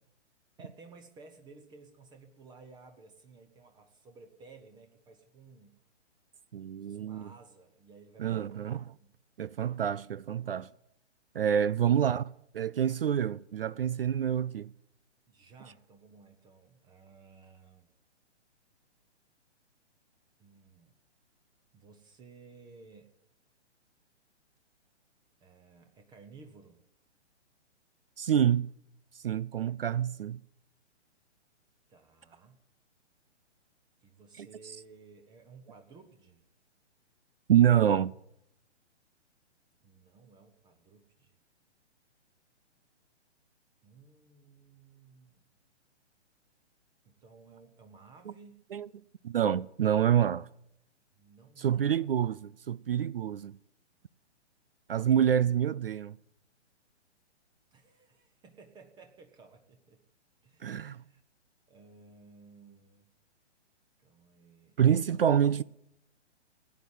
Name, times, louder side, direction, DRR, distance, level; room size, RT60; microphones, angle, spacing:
voice 1, 0.6-5.7 6.8-8.7 9.0-9.2 15.3-17.9 20.4-20.9 21.7-23.1 25.4-26.8 31.9-32.6 34.0-36.4 39.8-41.4 43.8-45.4 47.0-48.7 51.1-52.1 57.7-60.0 60.4-61.2 61.7-63.1 64.0-64.8 65.1-65.2, right 4 dB, 10° right, 0.9 m, -56 dB
voice 2, 6.5-7.3 8.2-8.8 9.4-10.7 11.3-14.7 28.2-28.7 29.2-30.4 34.4-34.5 37.5-38.1 48.7-48.9 49.2-50.5 51.6-53.5 54.9-56.1 60.6-61.0 64.8-65.6, right 9 dB, 55° right, 0.5 m, -27 dB
16.5 x 9.4 x 9.0 m
figure-of-eight pair, 125°, 35 cm